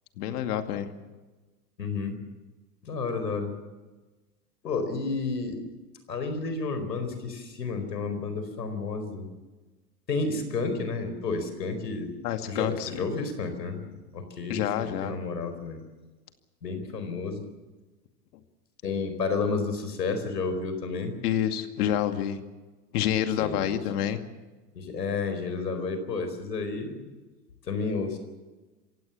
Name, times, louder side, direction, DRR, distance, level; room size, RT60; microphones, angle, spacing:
voice 1, 0.2-0.9 12.2-13.1 14.5-15.1 21.2-22.4 22.9-24.2, left 10 dB, 70° left, 7 dB, 2.4 m, -28 dB
voice 2, 1.8-2.2 2.8-3.5 4.6-5.6 6.1-9.3 10.1-12.1 12.5-13.8 14.1-15.8 16.6-17.5 18.8-21.1 23.4-23.8 24.7-27.1 27.7-28.2, left 4 dB, 90° left, 8 dB, 4.7 m, -31 dB
26.5 x 16.5 x 7.2 m, 1.2 s
hypercardioid pair, 95°, 48 cm